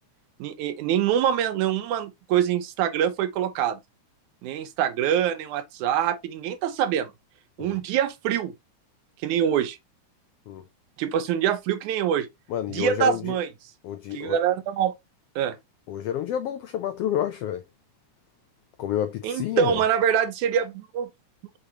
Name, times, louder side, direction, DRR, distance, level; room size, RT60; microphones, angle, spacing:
voice 1, 0.4-3.8 4.4-7.1 7.6-8.5 9.2-9.8 11.0-12.3 12.7-13.5 14.1-14.9 15.4-15.6 19.2-21.1, right 9 dB, 80° right, 2.3 m, -25 dB
voice 2, 12.5-13.4 13.8-14.4 15.9-17.6 18.8-19.8, left 10 dB, 85° left, 1.3 m, -29 dB
6.7 x 4.9 x 2.8 m
omnidirectional pair, 3.4 m